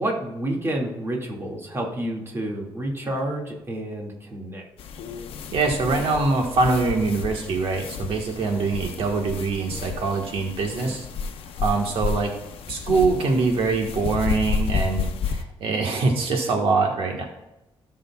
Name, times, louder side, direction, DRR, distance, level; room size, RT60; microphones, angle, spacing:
voice 1, 0.0-4.6, right 1 dB, 25° right, -1 dB, 2.1 m, -29 dB
sound 1, 4.8-15.4, left 5 dB, 85° left, 0.8 m, -31 dB
voice 2, 5.5-11.0 11.6-12.3 12.7-17.2, right 3 dB, 75° right, 1 dB, 1.5 m, -23 dB
17.0 x 6.5 x 2.4 m, 0.95 s
cardioid pair, 130°, 9 cm